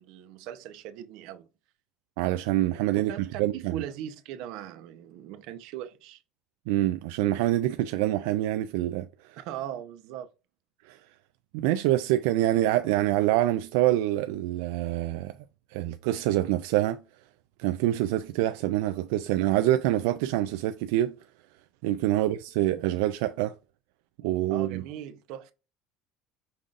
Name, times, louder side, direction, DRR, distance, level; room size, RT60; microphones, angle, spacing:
voice 1, 0.0-1.5 3.1-6.2 9.4-10.3 22.1-22.3 24.5-25.5, right 11 dB, 65° right, 0.7 m, -39 dB
voice 2, 2.2-3.1 3.4-3.8 6.7-9.4 10.8-11.0 11.5-15.4 15.7-17.0 17.6-21.2 21.8-23.5 24.2-24.8, right 14 dB, 90° right, 0.3 m, -26 dB
5.4 x 3.7 x 2.5 m
cardioid pair, 160°, 0 cm